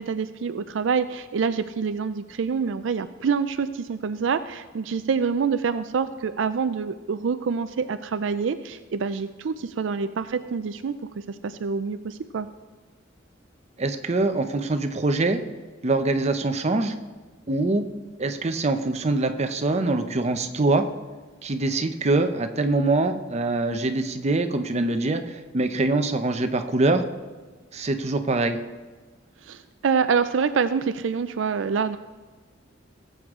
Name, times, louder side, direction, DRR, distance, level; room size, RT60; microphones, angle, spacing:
voice 1, 0.0-12.5 29.4-32.0, right 5 dB, 70° right, 11 dB, 0.4 m, -26 dB
voice 2, 13.8-15.4 15.8-16.9 17.5-17.8 18.2-20.8 21.4-27.0 27.7-28.6, right 2 dB, 35° right, 7 dB, 0.7 m, -24 dB
18.0 x 7.9 x 3.7 m, 1.4 s
head